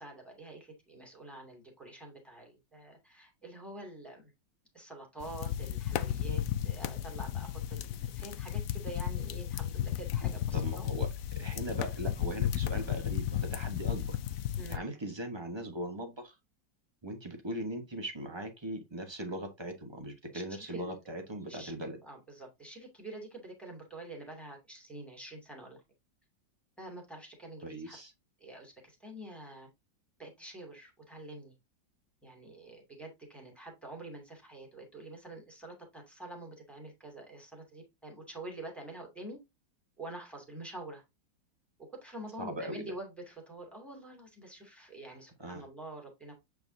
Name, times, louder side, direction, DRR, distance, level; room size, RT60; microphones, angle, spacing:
voice 1, 0.0-4.3 4.7-10.9 14.6-14.8 20.3-21.0 21.5-21.7 22.0-25.8 26.8-28.0 28.4-29.7 30.2-31.5 32.2-39.4 40.0-41.0 41.9-46.3, right 2 dB, ahead, 2.3 m, -46 dB
sound 1, 5.2-14.8, left 11 dB, 80° left, 0.7 m, -34 dB
voice 2, 10.5-11.1 11.4-14.2 14.7-16.3 17.0-22.0 27.6-28.1 42.4-42.8 45.4-45.6, right 1 dB, 20° right, 0.9 m, -39 dB
7.8 x 4.6 x 2.7 m
omnidirectional pair, 2.1 m